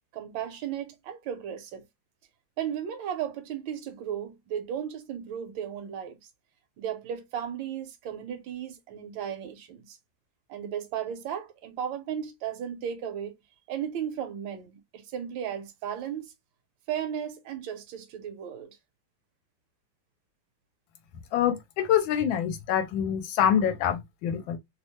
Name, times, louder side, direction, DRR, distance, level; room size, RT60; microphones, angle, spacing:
voice 1, 0.1-1.8 2.6-6.2 6.8-10.0 10.5-13.3 13.7-16.3 16.9-18.8, right 9 dB, 70° right, 1.4 m, -35 dB
voice 2, 21.3-24.6, left 9 dB, 80° left, 1.3 m, -25 dB
3.3 x 2.0 x 2.8 m
omnidirectional pair, 2.2 m